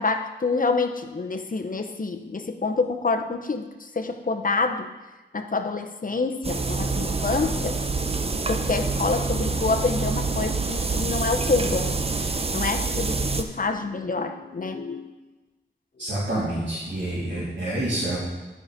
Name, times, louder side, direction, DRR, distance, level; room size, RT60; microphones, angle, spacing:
voice 1, 0.0-4.9 5.3-7.8 8.4-15.1, left 4 dB, 45° left, 5 dB, 0.8 m, -27 dB
sound 1, 6.4-13.4, right 3 dB, 30° right, 0.6 m, -26 dB
voice 2, 16.0-18.2, right 1 dB, 65° right, -11 dB, 3.1 m, -27 dB
12.5 x 4.9 x 5.0 m, 1.2 s
wide cardioid pair, 90°, 19 cm